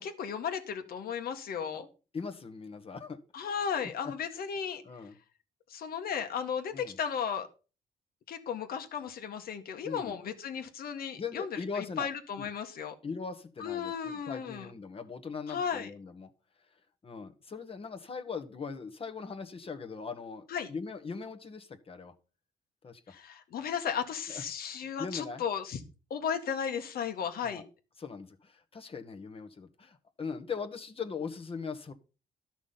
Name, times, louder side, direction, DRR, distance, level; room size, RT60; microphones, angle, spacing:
voice 1, 0.0-1.9 3.3-4.8 5.7-7.5 8.3-12.9 13.6-14.7 15.5-15.9 20.5-20.7 23.1-25.8 26.1-27.6, left 7 dB, 70° left, 7 dB, 1.8 m, -35 dB
voice 2, 2.1-3.2 4.0-4.4 4.8-5.1 6.7-7.0 9.8-10.1 11.2-12.1 12.4-12.5 13.0-16.3 17.0-22.1 22.8-23.0 24.3-24.4 25.0-25.4 27.4-27.7 28.0-31.9, left 5 dB, 35° left, 6 dB, 1.4 m, -40 dB
12.0 x 6.1 x 5.7 m, 0.34 s
cardioid pair, 100°, 16 cm